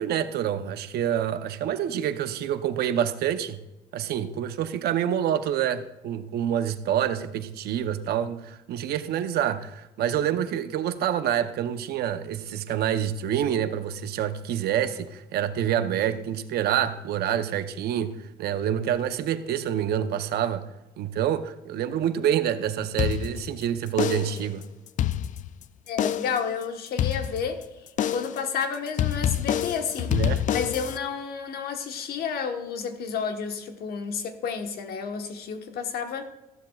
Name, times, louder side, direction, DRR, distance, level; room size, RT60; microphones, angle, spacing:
voice 1, 0.0-3.6 3.9-20.6 21.0-24.6 30.1-30.4, right 10 dB, 70° right, 0.8 m, -27 dB
sound 1, 23.0-23.6 24.0-24.5 24.9-25.6 26.0-26.5 27.0-27.6 28.0-28.5 29.0-31.0, left 11 dB, 50° left, 0.4 m, -27 dB
voice 2, 25.9-27.6 28.1-36.3, left 6 dB, 65° left, 1.3 m, -31 dB
14.5 x 12.0 x 2.4 m
cardioid pair, 110°, 17 cm